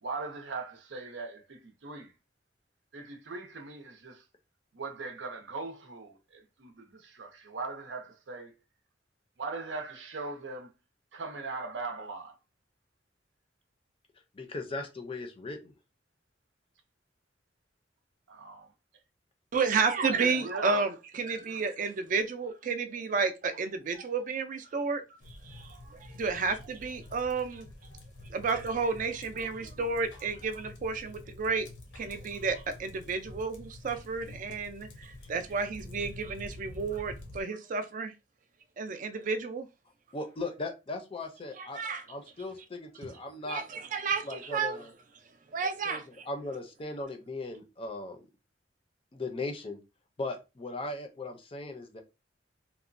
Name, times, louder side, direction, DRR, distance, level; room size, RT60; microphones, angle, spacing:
voice 1, 0.0-2.1 2.9-4.2 4.7-8.5 9.4-10.7 11.1-12.4 18.3-18.7 20.1-20.9, right 3 dB, 90° right, 0.6 m, -39 dB
voice 2, 14.3-15.7 35.3-35.4 40.1-41.8 42.1-43.6 44.2-44.9 45.9-46.0 46.3-48.2 49.1-49.8 50.2-52.0, left 2 dB, 30° left, 0.5 m, -38 dB
voice 3, 19.5-25.0 25.3-27.7 28.3-31.7 32.0-38.1 38.8-39.7 41.6-42.0 43.0-43.1 43.4-44.8 45.5-46.3, right 4 dB, 45° right, 0.4 m, -31 dB
sound 1, 25.2-37.4, left 1 dB, 90° left, 0.7 m, -48 dB
2.9 x 2.1 x 2.5 m
head